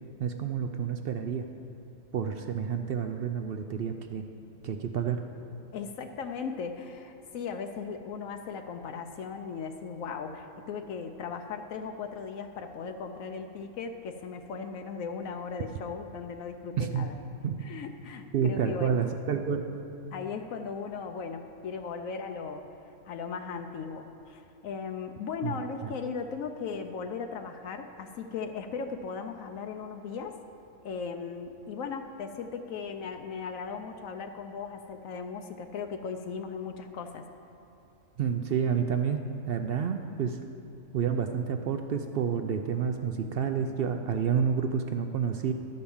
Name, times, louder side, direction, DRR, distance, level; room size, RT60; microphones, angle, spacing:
voice 1, 0.2-1.5 2.1-4.2 4.6-5.2 16.8-17.1 17.4-17.7 18.3-19.7 25.4-25.9 38.2-40.4 40.9-45.5, right 7 dB, 65° right, 6 dB, 0.6 m, -29 dB
voice 2, 5.7-17.2 17.6-19.0 20.1-22.7 23.1-30.4 30.8-37.3, left 5 dB, 75° left, 6 dB, 1.0 m, -37 dB
11.5 x 5.3 x 7.0 m, 2.7 s
omnidirectional pair, 1.4 m